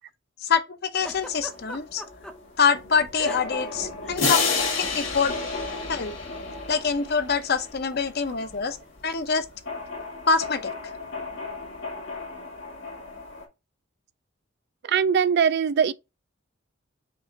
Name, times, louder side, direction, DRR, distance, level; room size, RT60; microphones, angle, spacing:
voice 1, 0.4-2.0 2.6-4.5 4.9-5.3 5.9-6.1 6.7-8.8 9.0-9.5 10.3-10.7, left 5 dB, 50° left, 0.6 m, -25 dB
sound 1, 1.0-13.4, left 2 dB, 70° left, 2.0 m, -37 dB
Giggle, 1.0-2.3 3.2-3.7 3.9-4.2 5.1-5.3, equal, 5° left, 0.5 m, -39 dB
sound 2, 4.2-6.9, left 4 dB, 85° left, 2.1 m, -27 dB
voice 2, 14.8-15.9, right 7 dB, 55° right, 0.3 m, -21 dB
5.3 x 2.5 x 3.7 m
head